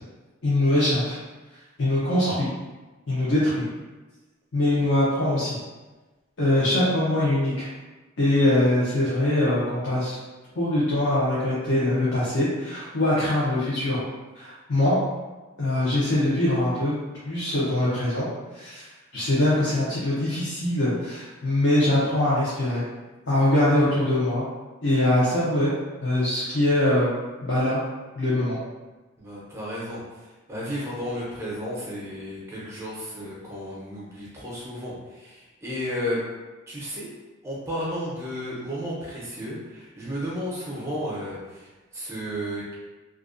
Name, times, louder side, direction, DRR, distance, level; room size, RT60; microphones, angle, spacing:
voice 1, 0.4-1.2 1.8-2.5 3.1-3.7 4.5-5.6 6.4-7.7 8.2-10.2 10.6-14.0 14.3-15.0 15.6-17.0 17.2-18.3 18.5-18.8 19.1-22.8 23.3-24.5 24.8-25.7 26.0-27.1 27.4-27.8 28.1-28.6, left 1 dB, 60° left, -11 dB, 0.6 m, -22 dB
voice 2, 29.2-36.2 36.7-37.1 37.4-42.7, equal, 15° right, -6 dB, 0.6 m, -33 dB
2.4 x 2.2 x 2.5 m, 1.2 s
head